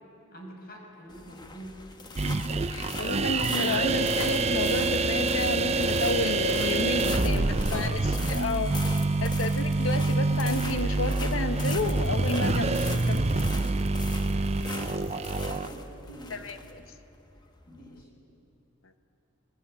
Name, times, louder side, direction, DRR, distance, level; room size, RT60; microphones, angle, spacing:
voice 1, 0.3-1.8 7.1-8.6 9.0-9.1 14.8-16.5 17.7-18.1, equal, 50° left, 0 dB, 6.2 m, -45 dB
sound 1, 1.1-18.0, left 3 dB, 20° left, 1.3 m, -42 dB
voice 2, 2.2-8.0 8.3-8.7 9.2-13.6 16.3-16.8, left 3 dB, 90° left, 8 dB, 1.4 m, -31 dB
sound 2, 2.2-15.7, right 3 dB, 35° right, 0.6 m, -26 dB
27.0 x 19.5 x 9.0 m, 2.9 s
head